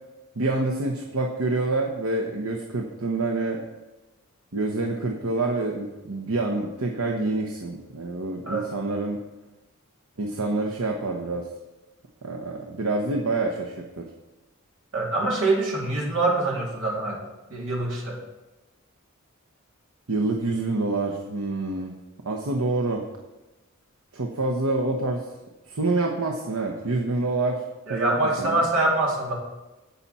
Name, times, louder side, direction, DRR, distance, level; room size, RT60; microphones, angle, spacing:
voice 1, 0.4-3.6 4.5-9.2 10.2-11.5 12.2-14.1 20.1-21.9 22.2-23.1 24.1-25.2 25.7-28.7, right 2 dB, 80° right, 1 dB, 1.0 m, -27 dB
voice 2, 14.9-17.2 17.5-18.2 27.9-29.3, right 2 dB, 60° right, -3 dB, 3.0 m, -24 dB
17.5 x 5.8 x 4.2 m, 1.1 s
head